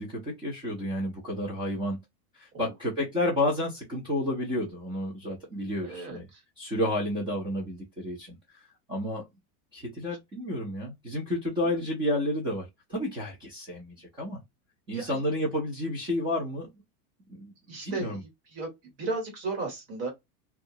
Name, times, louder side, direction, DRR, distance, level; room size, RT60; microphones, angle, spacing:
voice 1, 0.0-2.0 2.3-6.3 6.6-8.6 8.9-9.2 9.7-14.4 14.9-16.7 17.3-17.5 17.8-18.2, left 1 dB, 10° right, 0.4 m, -31 dB
voice 2, 5.8-6.2 14.9-15.2 17.7-18.7 19.0-20.1, right 3 dB, 30° right, 1.3 m, -34 dB
2.7 x 2.3 x 2.6 m
supercardioid pair, 165°, 44 cm